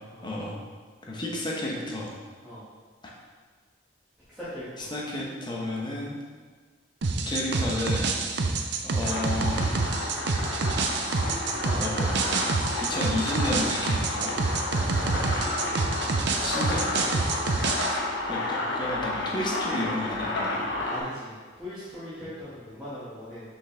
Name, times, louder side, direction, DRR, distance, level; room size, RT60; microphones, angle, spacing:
voice 1, 0.2-0.6 1.1-2.1 4.8-6.2 7.1-8.1 8.8-9.6 11.8-12.5 12.8-14.3 16.4-16.8 18.3-20.6, left 1 dB, 25° left, -3 dB, 1.1 m, -32 dB
voice 2, 4.3-4.9 8.4-8.6 11.3-11.8 14.6-15.5 16.7-17.1 20.9-23.4, left 1 dB, 5° right, -14 dB, 1.8 m, -40 dB
sound 1, 7.0-18.0, right 3 dB, 65° right, 0.6 m, -27 dB
sound 2, 9.0-21.0, left 2 dB, 75° left, 1.2 m, -31 dB
6.1 x 5.4 x 3.4 m, 1.5 s
head